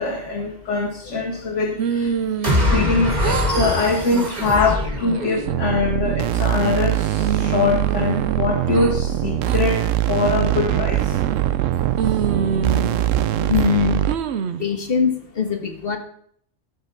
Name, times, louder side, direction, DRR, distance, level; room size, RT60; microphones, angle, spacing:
voice 1, 0.0-2.1 2.7-11.2, left 3 dB, 70° left, 0 dB, 1.8 m, -23 dB
sound 1, 1.8-2.9 3.2-3.7 4.1-4.5 5.0-5.5 6.0-6.8 7.2-8.9 9.4-9.6 10.2-10.6 11.2-11.7 12.0-13.6 14.1-14.7, right 7 dB, 65° right, 0.9 m, -27 dB
voice 2, 2.2-2.6 12.9-13.0 13.4-14.3 14.6-16.0, left 6 dB, 50° left, 5 dB, 1.6 m, -23 dB
sound 2, 2.4-5.8, left 1 dB, 35° right, 2.8 m, -23 dB
sound 3, 5.5-14.1, right 12 dB, 85° right, 1.0 m, -22 dB
14.0 x 5.3 x 5.9 m, 0.63 s
omnidirectional pair, 1.3 m